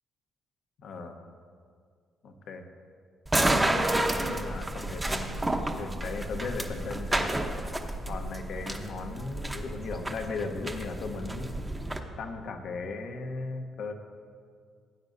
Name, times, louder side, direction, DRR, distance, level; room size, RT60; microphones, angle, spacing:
voice 1, 0.8-1.2 2.2-2.7 3.4-7.3 8.1-11.5 12.2-13.9, left 3 dB, 70° left, 5 dB, 1.0 m, -37 dB
sound 1, 3.3-12.0, right 1 dB, 15° right, 0.9 m, -30 dB
17.0 x 9.0 x 2.7 m, 2.1 s
cardioid pair, 90°, 0 cm